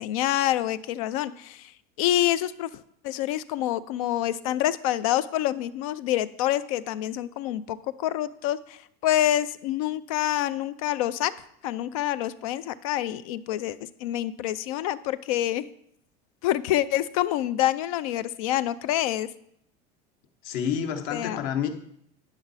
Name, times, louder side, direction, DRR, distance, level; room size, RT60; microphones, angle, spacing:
voice 1, 0.0-1.7 2.0-2.7 3.0-11.3 11.6-15.7 16.4-19.3 21.1-21.5, left 13 dB, 60° left, 16 dB, 0.4 m, -27 dB
voice 2, 20.4-21.7, left 8 dB, 45° left, 7 dB, 0.9 m, -28 dB
9.8 x 6.2 x 4.0 m, 0.71 s
supercardioid pair, 175°, 20 cm